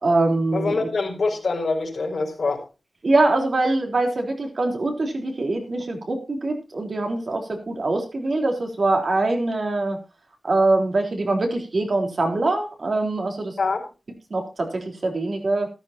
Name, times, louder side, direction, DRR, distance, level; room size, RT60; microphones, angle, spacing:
voice 1, 0.0-0.9 3.0-10.0 10.4-13.5 14.3-15.7, right 2 dB, 55° right, 2 dB, 3.8 m, -23 dB
voice 2, 0.5-2.6 13.6-13.8, left 3 dB, 65° left, 0 dB, 4.4 m, -25 dB
14.5 x 13.5 x 2.9 m, 0.29 s
wide cardioid pair, 105°, 0 cm